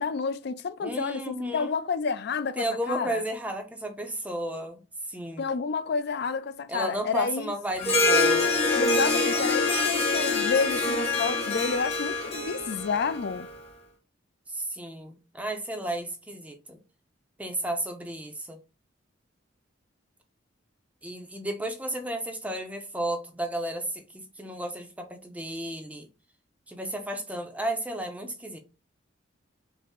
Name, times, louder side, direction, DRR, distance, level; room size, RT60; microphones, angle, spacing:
voice 1, 0.0-3.2 5.4-7.5 8.7-13.5, left 5 dB, 55° left, 0.4 m, -30 dB
voice 2, 0.8-1.7 2.6-4.8 5.1-5.5 6.7-8.5 14.5-16.8 17.4-18.6 21.0-26.1 26.7-28.6, right 1 dB, 5° right, 0.5 m, -33 dB
Harp, 7.8-13.5, left 3 dB, 30° left, 1.0 m, -25 dB
5.2 x 2.0 x 3.6 m
head